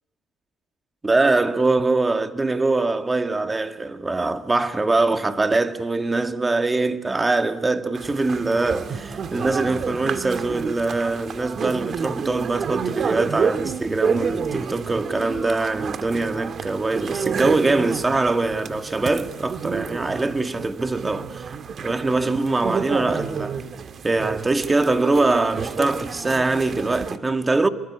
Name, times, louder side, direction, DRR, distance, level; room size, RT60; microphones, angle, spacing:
voice 1, 1.0-21.5 21.8-23.6 24.0-27.7, right 3 dB, 20° right, 2.0 m, -23 dB
sound 1, 7.9-27.2, right 6 dB, 50° right, 1.7 m, -29 dB
26.0 x 23.0 x 9.8 m
cardioid pair, 85°, 0 cm